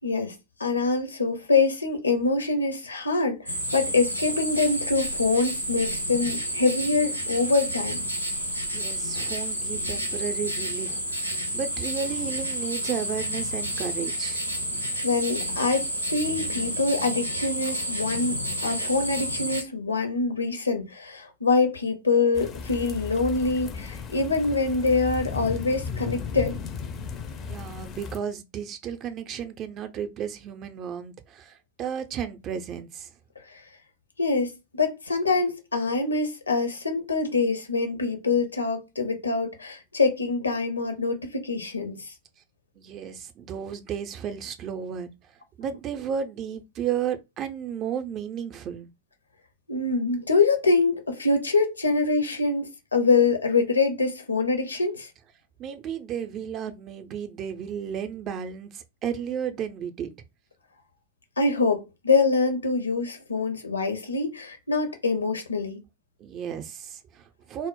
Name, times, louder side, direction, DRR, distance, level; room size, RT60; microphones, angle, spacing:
voice 1, 0.0-0.3 0.6-8.0 15.0-26.6 33.5-33.6 34.2-42.1 49.7-55.1 61.4-65.8, left 3 dB, 80° left, 0.6 m, -25 dB
sound 1, 3.5-19.6, equal, 90° right, 0.5 m, -30 dB
voice 2, 8.7-14.5 27.4-33.1 42.8-45.1 45.6-48.9 55.6-60.1 66.2-67.7, right 8 dB, 35° right, 0.4 m, -33 dB
sound 2, 22.3-28.2, left 5 dB, 30° left, 0.4 m, -35 dB
2.0 x 2.0 x 3.7 m
figure-of-eight pair, 90°, 0 cm